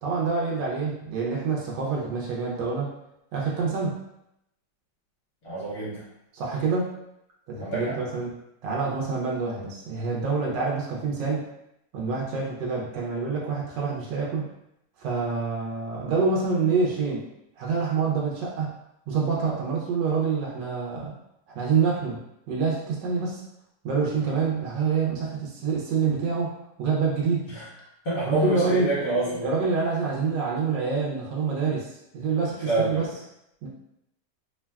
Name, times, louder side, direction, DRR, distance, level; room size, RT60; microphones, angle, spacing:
voice 1, 0.0-2.9 3.3-4.0 6.3-6.9 7.5-8.3 8.6-11.5 11.9-14.5 15.0-17.3 17.6-18.7 19.1-21.1 21.5-22.2 22.5-23.4 23.8-26.5 26.8-27.5 28.3-28.9 29.4-31.9 32.1-33.1 33.6-33.7, right 5 dB, 85° right, -4 dB, 1.3 m, -26 dB
voice 2, 5.4-6.0 7.6-8.0 27.5-27.6 28.0-29.5 32.4-33.1, right 2 dB, 60° left, -9 dB, 1.3 m, -27 dB
3.2 x 2.2 x 2.2 m, 0.82 s
omnidirectional pair, 1.9 m